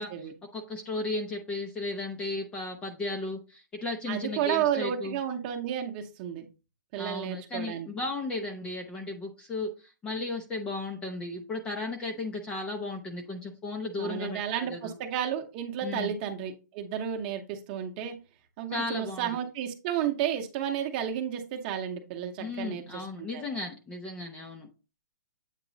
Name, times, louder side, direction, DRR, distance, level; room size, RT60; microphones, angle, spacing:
voice 1, 0.0-0.3 4.1-6.5 6.9-7.9 14.0-18.2 18.6-23.4, right 9 dB, 30° right, 4 dB, 0.9 m, -32 dB
voice 2, 0.5-5.2 7.0-14.9 15.8-16.1 18.7-19.3 22.4-24.7, left 2 dB, 10° left, 3 dB, 0.6 m, -35 dB
8.3 x 3.0 x 3.9 m, 0.31 s
hypercardioid pair, 160°, 10 cm